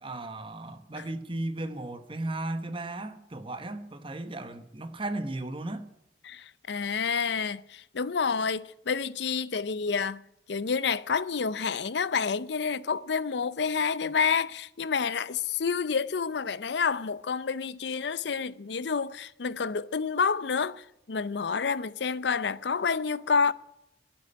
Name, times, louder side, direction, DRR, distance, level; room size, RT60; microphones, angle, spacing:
voice 1, 0.0-5.9, right 2 dB, 30° right, 1.1 m, -35 dB
voice 2, 6.2-10.2 10.5-23.5, left 5 dB, 65° left, 0.6 m, -29 dB
11.5 x 8.7 x 9.9 m
head